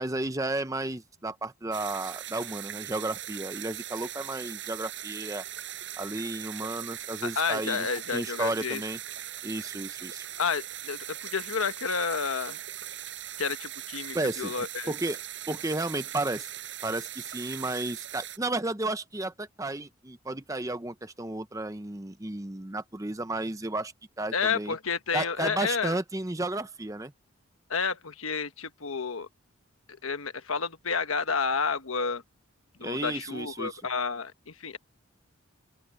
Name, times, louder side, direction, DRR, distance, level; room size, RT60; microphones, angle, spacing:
voice 1, 0.0-5.4 6.0-9.0 9.4-10.3 14.1-14.5 14.9-15.2 15.5-16.5 16.8-24.7 25.1-27.1 32.8-33.8, right 2 dB, 15° right, 0.7 m, -33 dB
sound 1, 1.7-18.4, right 12 dB, 60° right, 6.2 m, -40 dB
voice 2, 7.4-8.8 10.4-12.6 13.4-14.9 24.3-26.0 27.7-29.3 29.9-32.2 32.8-34.8, left 5 dB, 85° left, 1.3 m, -30 dB
open air
head